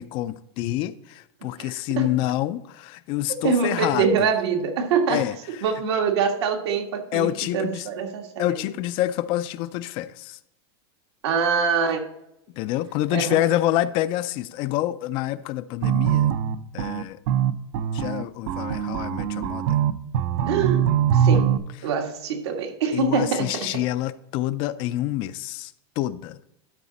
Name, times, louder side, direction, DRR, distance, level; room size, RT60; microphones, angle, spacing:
voice 1, 0.0-4.3 5.1-5.3 7.1-7.9 8.4-10.4 12.6-16.3 16.7-17.2 17.9-19.8 22.9-26.6, left 14 dB, 40° left, 0.4 m, -27 dB
voice 2, 1.6-2.1 3.4-5.2 5.6-8.5 11.2-12.0 13.1-13.4 20.5-20.9 21.1-21.6 21.8-23.8, right 6 dB, 85° right, 1.8 m, -24 dB
sound 1, 15.8-21.6, right 9 dB, 50° right, 0.5 m, -22 dB
12.5 x 5.0 x 4.1 m
supercardioid pair, 150°, 14 cm